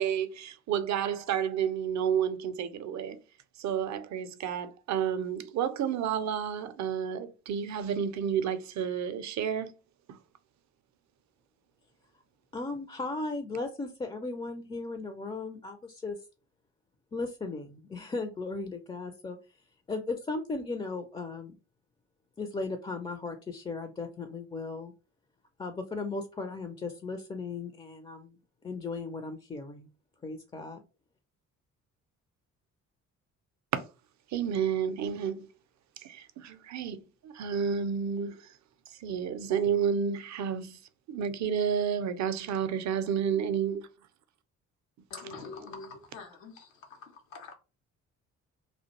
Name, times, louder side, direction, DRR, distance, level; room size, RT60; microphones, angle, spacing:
voice 1, 0.0-3.2 3.6-9.7 33.7-33.8 34.3-35.5 36.0-38.4 39.0-40.8 41.1-43.9, right 8 dB, 50° right, 0.5 m, -30 dB
voice 2, 12.5-16.2 17.1-19.4 19.9-21.6 22.4-24.9 25.6-28.4 28.6-29.9 30.2-30.8, left 3 dB, 15° left, 0.4 m, -36 dB
voice 3, 45.1-47.5, left 4 dB, 85° left, 0.7 m, -45 dB
2.3 x 2.1 x 2.9 m
hypercardioid pair, 45°, 38 cm